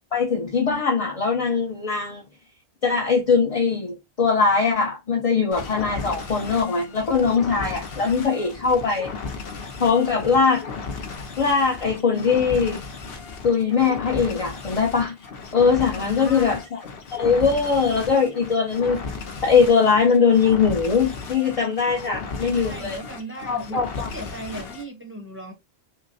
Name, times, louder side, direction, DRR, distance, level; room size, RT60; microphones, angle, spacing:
voice 1, 0.1-2.2 2.8-9.1 9.8-10.6 11.4-12.8 13.4-15.1 15.5-16.8 17.1-19.0 19.4-23.0 23.5-24.1, left 5 dB, 35° left, 0.8 m, -21 dB
sound 1, 5.5-24.9, left 4 dB, 60° left, 1.0 m, -35 dB
voice 2, 16.0-16.6 22.6-23.8 24.1-25.5, right 1 dB, 15° right, 0.8 m, -36 dB
5.5 x 2.1 x 2.6 m
omnidirectional pair, 1.1 m